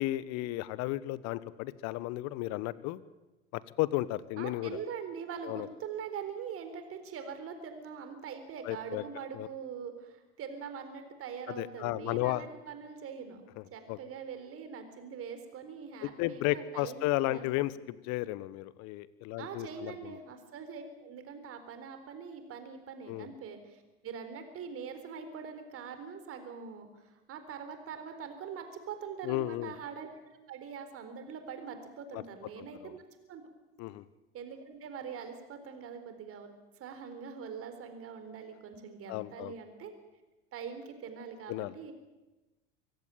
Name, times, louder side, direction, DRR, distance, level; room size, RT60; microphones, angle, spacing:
voice 1, 0.0-3.0 3.5-4.8 5.4-5.7 8.6-9.0 9.3-9.5 11.5-12.5 13.6-13.7 13.9-14.0 16.0-20.2 23.1-23.3 29.2-29.7 32.1-32.2 32.6-32.9 33.8-34.0 39.1-39.5 41.5-41.7, left 17 dB, 50° left, 18 dB, 1.2 m, -34 dB
voice 2, 4.4-17.7 19.4-30.2 30.5-33.0 33.3-33.4 34.3-36.5 36.8-39.9 40.5-41.9, right 6 dB, 40° right, 8 dB, 4.1 m, -43 dB
24.5 x 16.0 x 9.2 m, 1.1 s
figure-of-eight pair, 80°, 35 cm